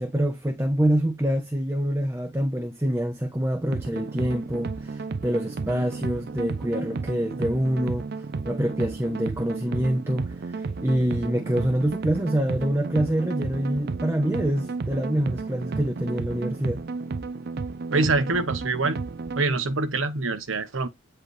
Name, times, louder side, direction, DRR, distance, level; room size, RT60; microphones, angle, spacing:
voice 1, 0.0-8.1 8.4-16.8, equal, 15° right, 1.0 m, -26 dB
sound 1, 3.6-19.4, right 4 dB, 50° right, 0.4 m, -33 dB
voice 2, 17.9-19.0 19.4-20.9, right 3 dB, 85° right, 1.1 m, -25 dB
9.4 x 4.8 x 3.3 m
head